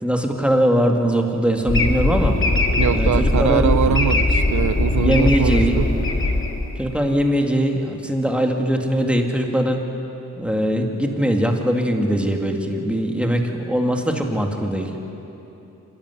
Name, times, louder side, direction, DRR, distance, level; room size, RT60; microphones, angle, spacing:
voice 1, 0.0-2.4 2.9-4.0 5.0-5.8 6.8-9.9 10.4-14.9, right 1 dB, 5° right, 2 dB, 2.7 m, -21 dB
sound 1, 1.7-7.1, left 2 dB, 40° left, 2.3 m, -20 dB
voice 2, 2.8-5.9, right 9 dB, 65° right, 13 dB, 0.5 m, -22 dB
26.5 x 12.5 x 9.8 m, 2.9 s
cardioid pair, 55°, 32 cm